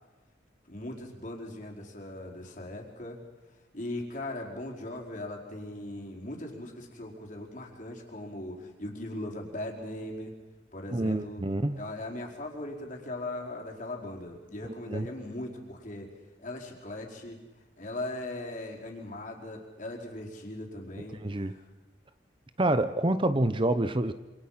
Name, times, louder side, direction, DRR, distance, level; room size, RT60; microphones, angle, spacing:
voice 1, 0.7-3.2 3.7-10.3 10.7-11.4 11.7-16.1 16.4-17.4 17.8-21.6, left 1 dB, 45° left, 4.5 m, -39 dB
voice 2, 10.9-11.8 14.9-15.1 21.2-21.5 22.6-24.1, right 1 dB, 25° right, 0.8 m, -27 dB
27.5 x 27.0 x 5.8 m
head